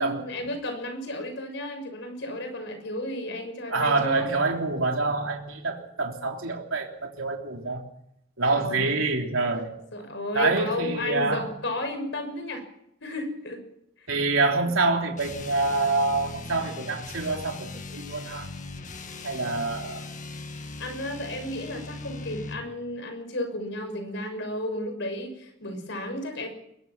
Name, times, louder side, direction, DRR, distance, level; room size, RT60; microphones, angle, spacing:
voice 1, 0.0-4.3 8.5-8.9 9.9-12.6 13.0-13.6 14.5-14.7 20.8-26.5, left 1 dB, 60° left, 6 dB, 6.2 m, -33 dB
voice 2, 3.7-7.8 8.4-9.8 10.3-11.5 14.1-18.5 19.2-20.0, right 3 dB, 75° right, 1 dB, 3.5 m, -26 dB
sound 1, 15.1-22.7, left 3 dB, 35° left, 1.8 m, -39 dB
23.5 x 21.5 x 6.0 m, 0.78 s
head